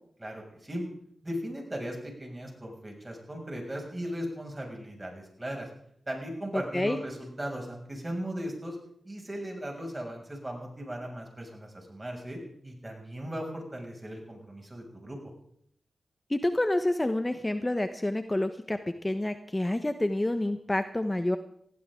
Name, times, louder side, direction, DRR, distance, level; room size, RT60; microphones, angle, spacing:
voice 1, 0.2-0.8 1.2-5.7 6.1-8.8 9.0-15.2, equal, 25° right, 1 dB, 6.9 m, -37 dB
voice 2, 16.3-18.8 19.0-21.4, left 1 dB, 25° left, 8 dB, 1.2 m, -28 dB
19.5 x 15.5 x 3.9 m, 0.68 s
cardioid pair, 40°, 0 cm